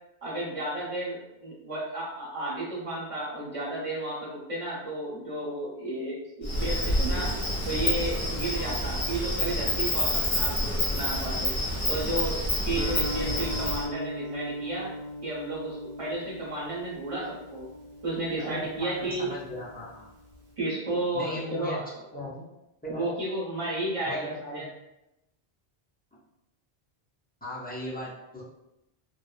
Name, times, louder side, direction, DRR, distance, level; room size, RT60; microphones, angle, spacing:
voice 1, 0.2-7.3 7.7-10.6 10.9-11.5 11.9-14.9 15.2-17.6 18.0-19.3 20.6-21.8 22.1-22.2 22.9-24.7, right 2 dB, 35° right, -6 dB, 0.9 m, -33 dB
Insect, 6.4-13.8, left 1 dB, 85° left, 1.4 m, -28 dB
Guitar, 12.8-20.5, equal, 70° right, 0.9 m, -39 dB
voice 2, 18.4-20.1 21.1-21.8 22.1-22.4 22.8-23.2 24.1-24.7 27.4-28.4, left 1 dB, 15° left, -7 dB, 0.3 m, -37 dB
2.9 x 2.0 x 2.3 m, 0.89 s
omnidirectional pair, 1.1 m